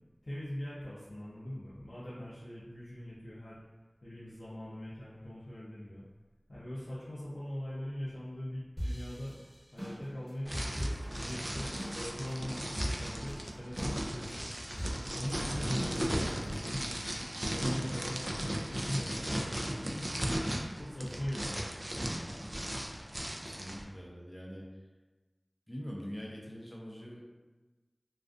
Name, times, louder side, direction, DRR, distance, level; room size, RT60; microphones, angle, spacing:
voice 1, 0.2-3.6 4.0-6.0 6.5-9.4 9.7-16.9 17.5-20.2 20.8-21.8, equal, 85° left, -11 dB, 0.5 m, -42 dB
sound 1, 8.8-12.0 12.3-12.4 12.8-13.3 13.8-14.3 14.8-16.5, equal, ahead, 1.0 m, -39 dB
sound 2, 10.5-23.8, equal, 40° right, 0.3 m, -36 dB
voice 2, 23.4-24.8 25.7-27.4, equal, 20° left, -3 dB, 0.5 m, -44 dB
2.4 x 2.3 x 2.4 m, 1.2 s
wide cardioid pair, 40°, 0 cm